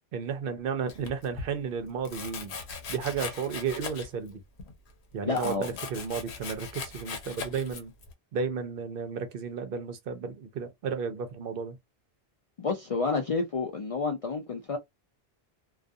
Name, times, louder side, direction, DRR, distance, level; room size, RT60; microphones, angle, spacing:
voice 1, 0.1-2.6 2.9-4.4 5.1-7.9 8.3-11.8, right 6 dB, 65° right, 0.7 m, -33 dB
Domestic sounds home sounds, 0.9-1.5 2.1-4.3 4.6-8.1, left 5 dB, 85° left, 0.9 m, -40 dB
voice 2, 5.3-5.7 12.6-14.8, left 4 dB, 55° left, 0.4 m, -29 dB
2.3 x 2.3 x 2.5 m
omnidirectional pair, 1.1 m